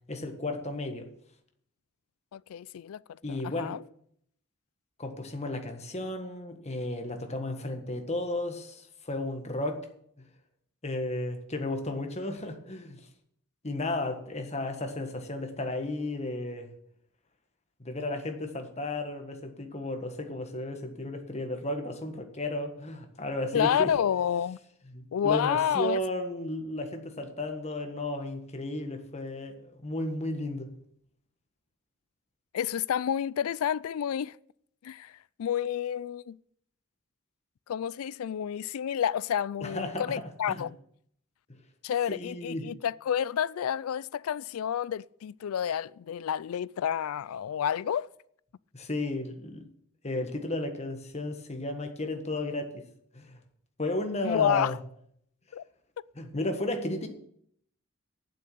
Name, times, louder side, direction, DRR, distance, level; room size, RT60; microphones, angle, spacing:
voice 1, 0.1-1.1 3.2-3.7 5.0-9.8 10.8-13.1 13.6-16.7 17.8-23.9 24.9-30.7 39.6-40.7 42.1-42.7 48.7-49.6 50.0-52.8 53.1-53.4 53.8-54.8 56.1-57.1, left 2 dB, 30° left, 1.5 m, -34 dB
voice 2, 2.3-3.0 3.3-3.8 23.5-24.6 25.1-26.0 32.5-34.4 34.8-35.1 35.4-36.4 37.7-40.8 41.8-48.1 54.2-54.8 55.5-55.6, left 9 dB, 75° left, 0.3 m, -29 dB
9.2 x 7.5 x 8.6 m
head